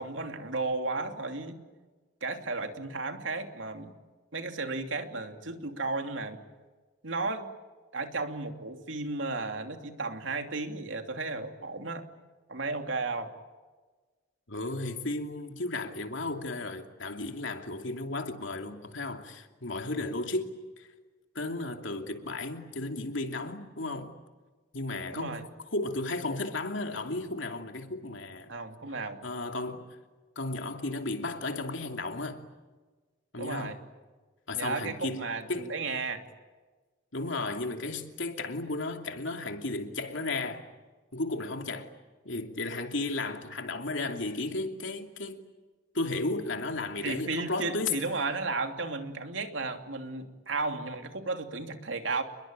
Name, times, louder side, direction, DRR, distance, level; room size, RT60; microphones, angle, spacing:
voice 1, 0.0-1.6 2.2-3.9 4.3-6.4 7.0-7.5 7.9-12.1 12.5-13.3 25.1-25.4 28.5-29.2 33.4-33.8 34.5-36.2 47.0-52.2, right 3 dB, 85° right, 2.9 m, -34 dB
voice 2, 14.5-20.9 21.3-24.1 24.7-25.4 25.7-28.5 29.2-29.9 30.4-32.4 33.3-33.8 34.5-35.7 37.1-40.6 41.1-41.9 42.2-45.4 45.9-48.0, left 2 dB, 80° left, 2.8 m, -34 dB
29.0 x 22.0 x 9.0 m
head